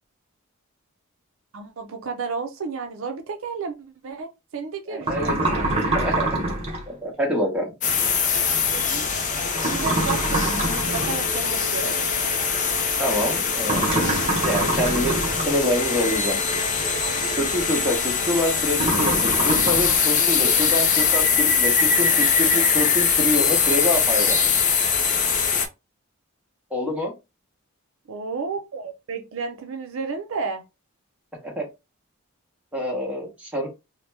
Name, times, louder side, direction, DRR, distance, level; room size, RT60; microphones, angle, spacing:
voice 1, 1.5-3.8 4.0-5.7 8.7-9.1 9.7-12.1 28.1-30.6, right 5 dB, 65° right, 0.5 m, -32 dB
voice 2, 4.9-6.3 6.9-7.7 13.0-14.0 14.4-15.2 15.4-16.4 17.4-24.4 26.7-27.1 31.4-31.6 32.7-33.7, equal, 5° right, 1.0 m, -26 dB
sound 1, 5.0-6.8 9.6-11.2 13.6-15.6 18.7-20.0, right 2 dB, 30° right, 0.7 m, -25 dB
sound 2, 7.8-25.7, left 6 dB, 35° left, 0.5 m, -22 dB
sound 3, 9.9-18.0, right 6 dB, 20° left, 1.0 m, -39 dB
2.7 x 2.1 x 3.3 m
head